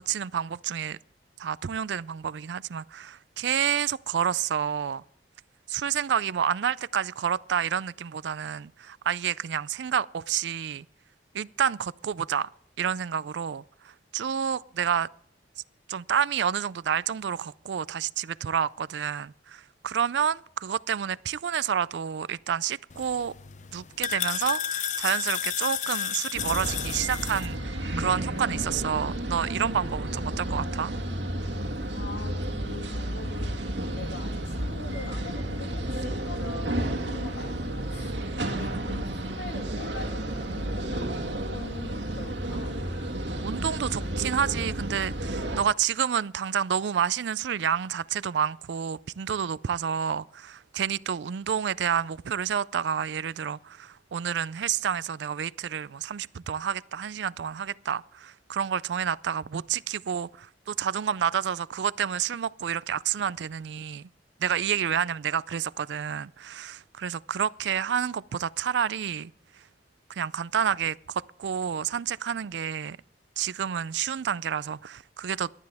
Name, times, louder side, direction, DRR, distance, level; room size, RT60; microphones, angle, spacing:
voice 1, 0.1-1.0 1.4-5.0 5.7-10.9 11.3-12.5 12.8-15.1 15.9-23.3 23.7-30.9 43.4-64.1 64.4-69.3 70.1-73.0 73.4-75.5, right 8 dB, 70° right, 0.4 m, -29 dB
sound 1, 22.9-27.5, left 9 dB, 45° left, 0.5 m, -32 dB
sound 2, 26.3-45.6, right 1 dB, 90° right, 1.9 m, -32 dB
voice 2, 31.9-42.8, left 2 dB, 75° left, 2.4 m, -43 dB
18.0 x 12.0 x 3.5 m
head